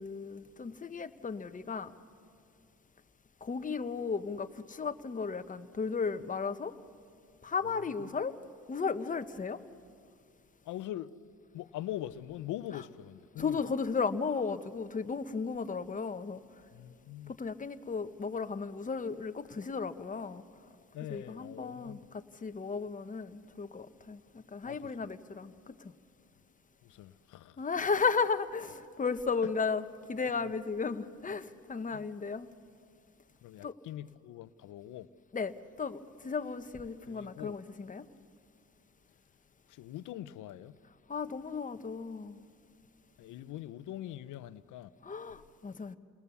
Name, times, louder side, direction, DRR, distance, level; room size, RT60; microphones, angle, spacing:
voice 1, 0.0-1.9 3.4-6.7 7.4-8.3 8.7-9.6 13.4-16.4 17.4-20.4 21.1-25.7 27.6-32.5 33.6-33.7 35.3-38.1 41.1-42.5 45.0-46.0, left 5 dB, 25° left, 1.0 m, -35 dB
voice 2, 10.6-11.1 11.5-13.6 16.7-17.3 20.9-22.0 24.6-24.9 26.8-27.6 29.4-29.5 30.4-30.5 31.9-32.1 33.4-35.1 37.1-37.6 39.7-40.8 43.2-44.9, left 13 dB, 80° left, 0.7 m, -43 dB
29.0 x 20.0 x 7.0 m
cardioid pair, 90°, 30 cm